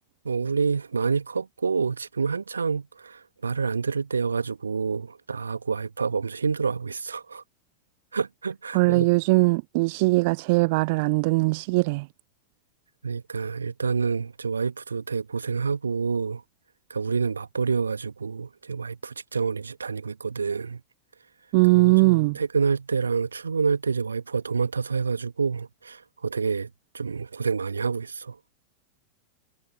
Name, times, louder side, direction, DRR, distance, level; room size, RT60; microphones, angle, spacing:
voice 1, 0.2-7.4 8.1-9.1 13.0-16.4 16.9-20.8 21.7-28.4, right 5 dB, 75° right, 1.9 m, -28 dB
voice 2, 8.7-12.1 21.5-22.4, right 26 dB, 50° right, 0.3 m, -20 dB
figure-of-eight pair, 90°, 0 cm